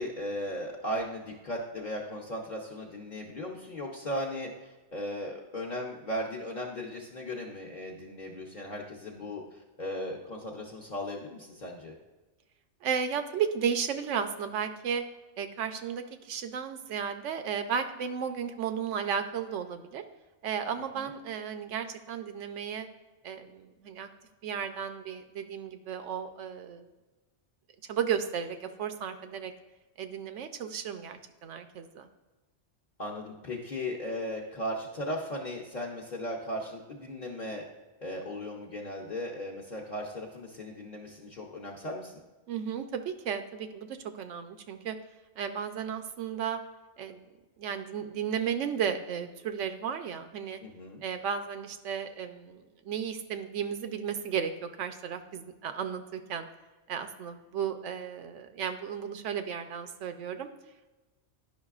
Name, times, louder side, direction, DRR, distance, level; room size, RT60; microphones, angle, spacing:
voice 1, 0.0-11.9 20.9-21.1 33.0-37.6 38.0-42.2 50.6-51.0, left 1 dB, 45° left, -2 dB, 0.8 m, -37 dB
voice 2, 12.8-15.0 15.4-20.0 20.4-22.9 23.2-24.1 24.4-26.9 27.9-29.5 30.0-32.1 42.5-45.0 45.4-46.6 47.0-47.2 47.6-50.6 51.0-56.5 56.9-60.5, right 7 dB, 85° right, 8 dB, 1.0 m, -34 dB
10.5 x 5.6 x 2.4 m, 1.2 s
omnidirectional pair, 1.2 m